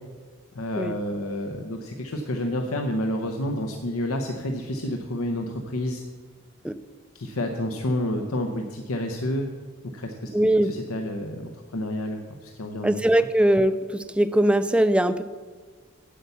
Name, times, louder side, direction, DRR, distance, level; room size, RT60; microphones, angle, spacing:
voice 1, 0.5-6.0 7.1-9.5 9.9-10.3 10.6-13.0, left 1 dB, 85° left, 3 dB, 0.8 m, -29 dB
voice 2, 10.3-10.8 12.8-15.2, right 1 dB, 5° right, 12 dB, 0.3 m, -21 dB
8.4 x 8.1 x 6.9 m, 1.4 s
head